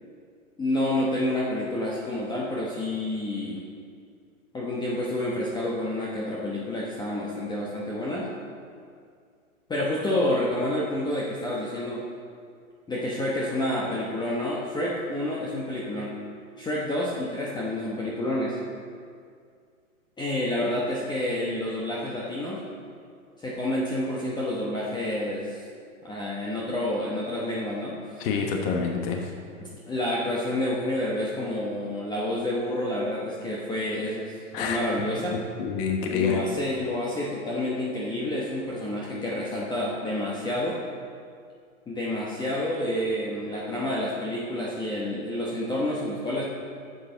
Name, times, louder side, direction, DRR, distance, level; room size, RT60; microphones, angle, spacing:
voice 1, 0.6-3.6 4.5-8.3 9.7-12.0 12.9-16.1 16.6-18.6 20.2-22.6 23.4-25.6 26.0-28.3 29.6-35.4 36.1-40.8 41.9-46.4, left 1 dB, 10° left, -5 dB, 1.0 m, -29 dB
voice 2, 28.2-29.3 34.5-34.8 35.6-36.4, left 6 dB, 40° left, 2 dB, 1.3 m, -27 dB
11.0 x 8.0 x 4.0 m, 2.2 s
hypercardioid pair, 125°, 39 cm